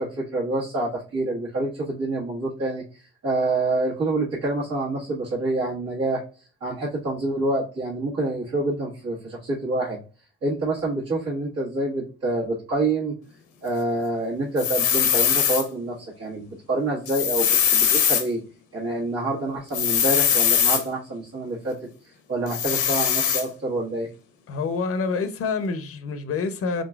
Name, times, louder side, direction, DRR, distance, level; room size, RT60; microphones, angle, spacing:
voice 1, 0.0-6.2 6.6-10.0 10.4-13.1 13.6-18.4 18.7-21.8 22.3-24.1, right 2 dB, 60° right, 1.5 m, -27 dB
sound 1, 14.6-15.6 17.1-18.2 19.7-20.8 22.5-23.4, left 8 dB, 85° left, 0.8 m, -21 dB
voice 2, 24.5-26.8, left 4 dB, 50° left, 0.6 m, -27 dB
3.8 x 3.7 x 2.3 m
cardioid pair, 90°, 30 cm